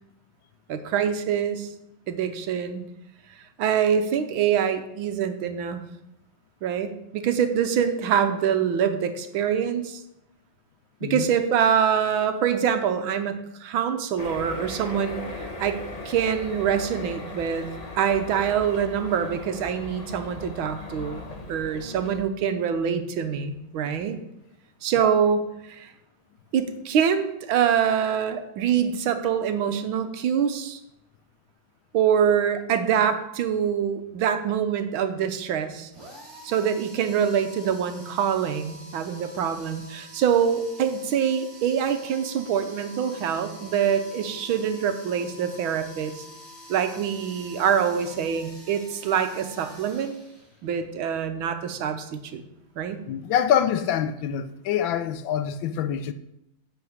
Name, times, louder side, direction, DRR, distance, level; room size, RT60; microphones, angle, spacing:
voice 1, 0.7-1.7 2.1-2.8 3.6-5.8 6.6-10.0 11.0-15.8 16.1-17.7 18.0-24.2 24.8-25.9 26.5-30.8 31.9-35.9 36.4-46.2 46.7-50.1 50.6-52.4 52.8-53.0, right 8 dB, 90° right, 1.7 m, -25 dB
sound 1, 14.2-22.2, left 2 dB, 25° left, 0.9 m, -38 dB
sound 2, 35.9-50.8, left 1 dB, 30° right, 3.4 m, -46 dB
voice 2, 53.1-56.1, left 9 dB, 75° left, 1.4 m, -25 dB
10.5 x 4.5 x 7.9 m
omnidirectional pair, 2.2 m